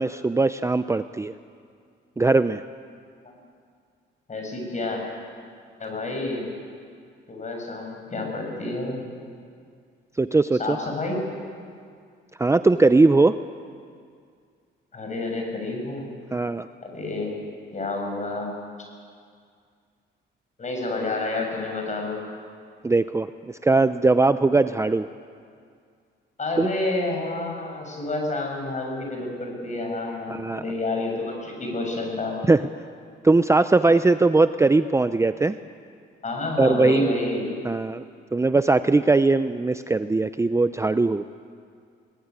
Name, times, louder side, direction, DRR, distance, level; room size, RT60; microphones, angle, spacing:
voice 1, 0.0-1.3 2.2-2.6 10.2-10.8 12.4-13.4 16.3-16.7 22.8-25.1 26.6-26.7 30.3-30.6 32.5-32.6 33.2-35.6 36.6-37.1 37.6-38.0 38.3-41.2, right 3 dB, 15° right, 11 dB, 0.6 m, -20 dB
voice 2, 4.3-5.0 5.8-6.5 7.3-9.1 10.6-11.2 14.9-16.1 16.8-17.4 17.7-18.6 20.6-22.2 26.4-32.4 36.2-37.6, left 2 dB, 35° left, 2 dB, 7.5 m, -29 dB
22.0 x 20.0 x 9.6 m, 2.2 s
cardioid pair, 90°, 20 cm